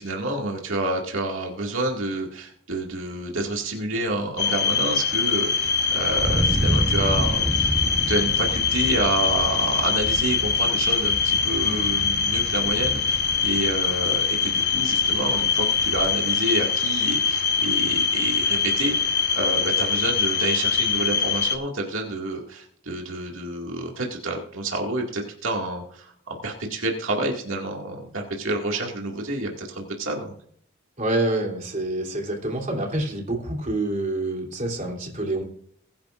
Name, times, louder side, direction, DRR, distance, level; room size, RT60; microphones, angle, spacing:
voice 1, 0.0-7.8 8.1-30.3, right 2 dB, 70° right, 0 dB, 2.1 m, -29 dB
sound 1, 4.4-21.6, left 6 dB, 50° left, 1.1 m, -23 dB
Thunder, 5.5-16.1, right 1 dB, 15° right, 0.9 m, -30 dB
voice 2, 31.0-35.4, right 2 dB, 35° right, 1 dB, 3.2 m, -27 dB
21.0 x 10.5 x 2.5 m, 0.63 s
head